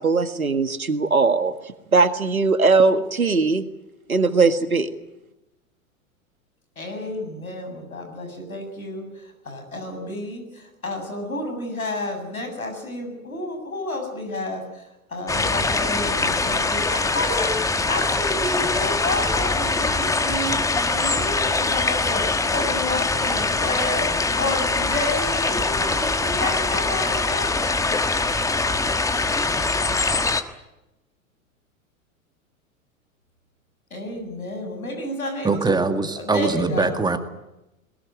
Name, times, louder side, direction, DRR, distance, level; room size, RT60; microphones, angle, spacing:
voice 1, 0.0-1.5 1.9-3.7 4.1-4.9, right 4 dB, 90° right, 10 dB, 1.7 m, -19 dB
voice 2, 6.8-9.0 9.5-14.6 15.1-17.6 17.9-22.2 22.5-27.5 33.9-35.7 36.3-37.0, left 1 dB, 85° left, 5 dB, 7.2 m, -30 dB
sound 1, 15.3-30.4, left 3 dB, 10° left, 1.3 m, -23 dB
voice 3, 35.4-37.2, right 3 dB, 10° right, 7 dB, 1.9 m, -22 dB
21.5 x 20.5 x 9.0 m, 0.94 s
figure-of-eight pair, 95°, 41 cm